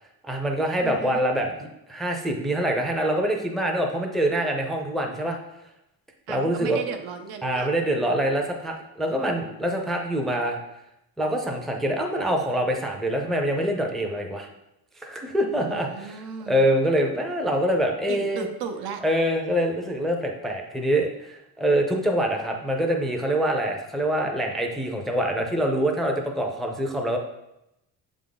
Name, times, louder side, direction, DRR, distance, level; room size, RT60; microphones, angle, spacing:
voice 1, 0.2-5.4 6.3-6.8 7.4-10.6 11.2-14.5 15.0-18.5 19.0-27.2, right 1 dB, ahead, 1 dB, 0.4 m, -25 dB
voice 2, 0.8-1.2 6.3-7.7 15.6-16.7 18.1-19.0, right 6 dB, 85° right, 6 dB, 0.8 m, -35 dB
7.0 x 3.6 x 3.8 m, 0.87 s
cardioid pair, 160°, 37 cm